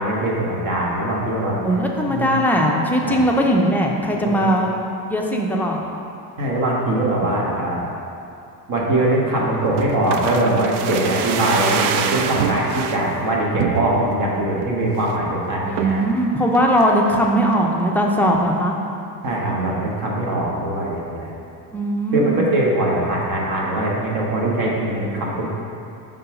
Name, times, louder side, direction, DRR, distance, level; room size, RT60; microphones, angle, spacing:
voice 1, 0.0-1.6 2.1-2.3 3.0-3.2 4.2-4.4 6.4-7.9 8.7-16.0 19.2-21.3 22.1-25.5, right 1 dB, 55° right, -3 dB, 1.3 m, -22 dB
voice 2, 1.6-4.7 5.1-5.8 15.7-18.7 21.7-22.4, equal, 5° left, -1 dB, 0.3 m, -19 dB
sound 1, 9.8-13.0 13.6-14.2 14.6-14.7 15.0-15.3 15.8-16.1 16.5-17.2 17.5-17.6, right 7 dB, 80° right, 0.5 m, -25 dB
5.4 x 3.8 x 5.8 m, 2.6 s
cardioid pair, 150°, 40 cm